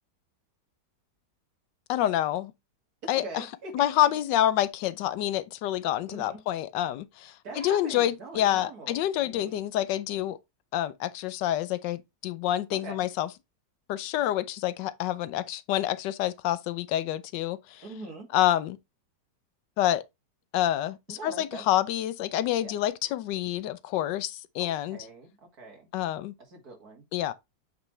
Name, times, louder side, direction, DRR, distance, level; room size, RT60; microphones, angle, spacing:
voice 1, 1.9-2.5 3.1-3.4 3.7-10.4 10.7-13.3 13.9-17.8 18.3-18.8 19.8-20.0 20.5-25.0 25.9-26.3 27.1-27.3, left 12 dB, 80° left, 1.2 m, -27 dB
voice 2, 3.1-3.9 6.1-6.4 7.4-9.6 12.7-13.1 17.8-18.3 21.1-21.6 22.6-22.8 24.6-25.3 25.6-25.9 26.5-27.1, right 3 dB, 55° right, 2.6 m, -43 dB
8.1 x 4.0 x 3.2 m
omnidirectional pair, 1.9 m